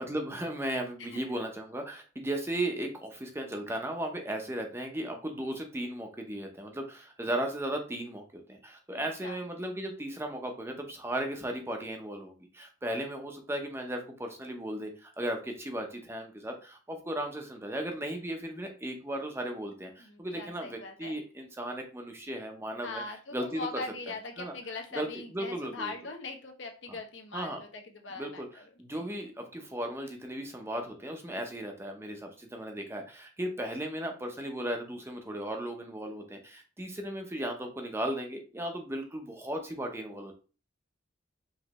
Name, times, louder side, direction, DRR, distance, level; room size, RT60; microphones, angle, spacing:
voice 1, 0.0-23.8 24.4-24.5 24.9-25.9 26.9-27.0 27.3-27.6 28.1-40.3, right 1 dB, 15° right, 3 dB, 0.7 m, -36 dB
voice 2, 20.0-21.2 22.8-28.4 28.9-29.1, left 3 dB, 75° left, 3 dB, 1.0 m, -41 dB
5.2 x 3.1 x 3.0 m, 0.35 s
head